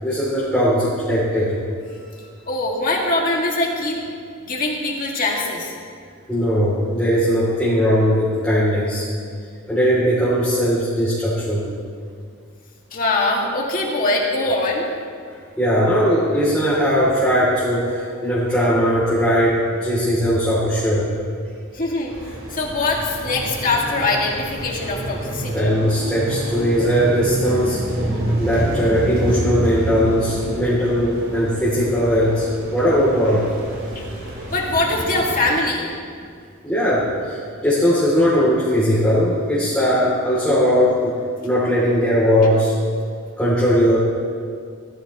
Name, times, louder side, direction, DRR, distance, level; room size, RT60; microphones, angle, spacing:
voice 1, 0.0-1.6 6.3-9.0 9.7-11.7 15.6-21.1 25.5-27.8 28.4-32.5 32.7-33.5 36.6-41.1 41.4-42.7 43.4-44.0, equal, 5° left, -9 dB, 3.1 m, -19 dB
voice 2, 2.5-4.0 4.4-5.7 12.9-14.8 21.7-25.7 33.9-34.1 34.5-35.9, left 2 dB, 45° left, -2 dB, 2.3 m, -22 dB
sound 1, 22.1-35.5, right 1 dB, 85° right, 4.0 m, -28 dB
18.5 x 14.5 x 3.2 m, 2.2 s
head